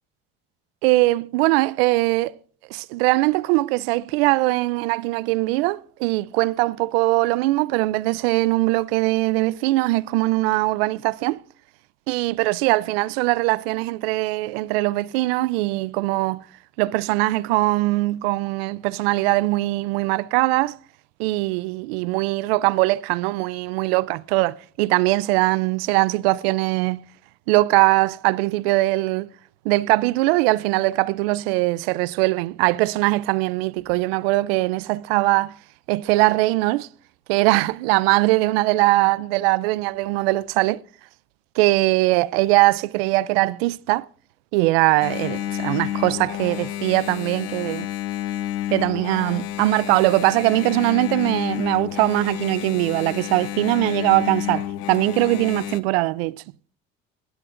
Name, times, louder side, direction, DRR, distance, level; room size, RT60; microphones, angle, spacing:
voice 1, 0.8-2.3 2.7-11.4 12.1-16.4 16.8-20.8 21.2-27.0 27.5-29.3 29.6-35.5 35.9-36.9 37.3-40.8 41.6-44.1 44.5-47.9 48.7-56.4, right 20 dB, 90° right, 0.5 m, -21 dB
Engine, 45.0-55.8, left 13 dB, 85° left, 0.9 m, -30 dB
20.5 x 11.0 x 2.5 m
supercardioid pair, 85°, 29 cm